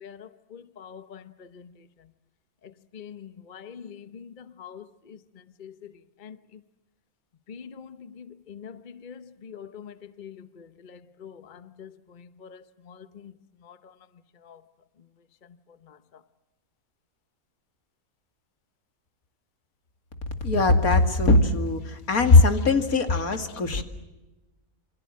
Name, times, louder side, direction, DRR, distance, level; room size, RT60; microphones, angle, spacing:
voice 1, 0.0-1.2 2.9-4.3 4.6-4.8 5.6-5.7 6.2-6.3 7.5-7.9 8.2-8.8 9.0-9.9 10.2-10.7 11.2-11.4 11.8-11.9 12.5-12.6, left 7 dB, 40° left, 1.0 m, -43 dB
voice 2, 20.4-23.8, left 2 dB, 80° left, 2.8 m, -23 dB
28.0 x 26.0 x 7.5 m
omnidirectional pair, 1.5 m